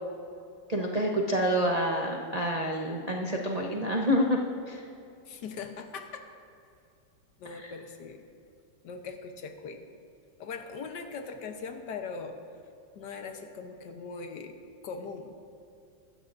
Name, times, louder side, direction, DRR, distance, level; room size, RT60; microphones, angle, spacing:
voice 1, 0.7-4.4 4.7-4.9 7.5-7.7, equal, 50° right, -1 dB, 0.4 m, -28 dB
voice 2, 5.3-6.3 7.4-8.2 8.8-9.9 10.4-12.4 12.9-14.5 14.8-15.3, left 5 dB, 65° left, 6 dB, 1.4 m, -40 dB
23.0 x 13.0 x 2.6 m, 2.6 s
omnidirectional pair, 2.1 m